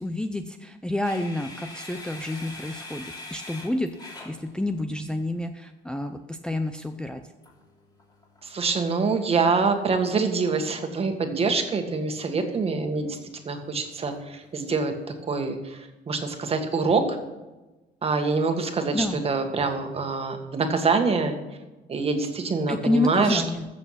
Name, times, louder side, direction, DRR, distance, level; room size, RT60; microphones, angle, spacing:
voice 1, 0.0-3.0 3.3-7.2 18.9-19.2 22.7-23.7, left 1 dB, 5° left, 7 dB, 0.6 m, -29 dB
sound 1, 1.0-5.1 7.4-15.4, left 2 dB, 25° left, 3.3 m, -46 dB
voice 2, 8.4-13.2 13.4-17.2 18.0-21.4 21.9-23.4, right 4 dB, 35° right, 5 dB, 1.8 m, -25 dB
14.5 x 6.9 x 5.8 m, 1.1 s
cardioid pair, 110°, 17 cm